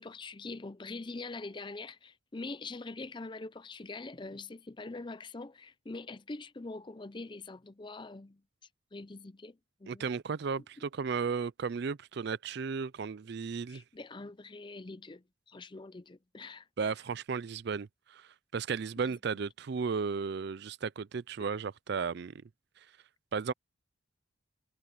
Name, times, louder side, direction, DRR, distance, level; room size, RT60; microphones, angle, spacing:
voice 1, 0.0-8.4 8.9-10.1 10.8-10.9 13.7-16.7 19.0-19.1 21.4-21.5, left 3 dB, 25° left, 0.5 m, -44 dB
voice 2, 9.9-13.8 16.8-22.4 23.3-23.5, right 5 dB, 50° right, 0.4 m, -34 dB
head